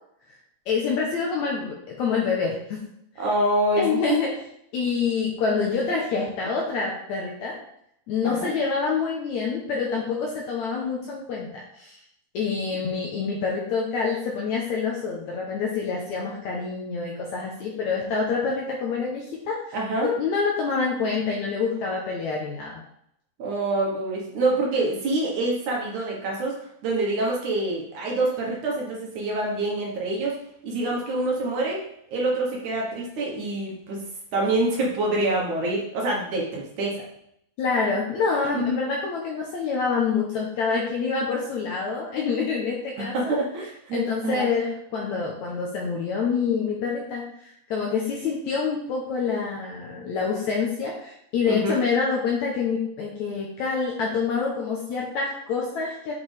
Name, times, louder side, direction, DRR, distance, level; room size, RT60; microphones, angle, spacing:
voice 1, 0.7-2.8 3.2-3.3 3.8-4.3 4.7-7.5 8.1-12.0 12.3-22.8 37.6-43.4 43.9-56.1, left 5 dB, 70° left, -2 dB, 1.8 m, -27 dB
voice 2, 3.2-4.2 8.2-8.5 19.7-20.1 23.4-30.4 30.6-31.8 32.1-37.0 38.5-38.8 43.0-44.5 51.5-51.7, right 2 dB, 60° right, -3 dB, 2.5 m, -26 dB
8.4 x 5.1 x 3.4 m, 0.74 s
omnidirectional pair, 4.3 m